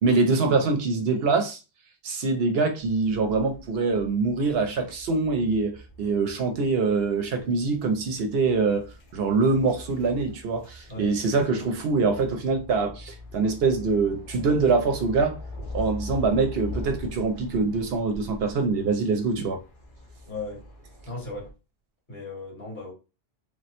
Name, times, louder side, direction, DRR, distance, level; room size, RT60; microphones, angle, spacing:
voice 1, 0.0-1.6 2.0-15.4 15.7-19.6, right 4 dB, 70° right, 0.8 m, -24 dB
sound 1, 2.8-21.5, left 2 dB, 55° left, 0.9 m, -42 dB
voice 2, 10.9-11.6 20.3-20.6 21.1-21.5 22.1-22.9, left 3 dB, 75° left, 1.9 m, -37 dB
3.2 x 2.1 x 2.8 m
omnidirectional pair, 1.1 m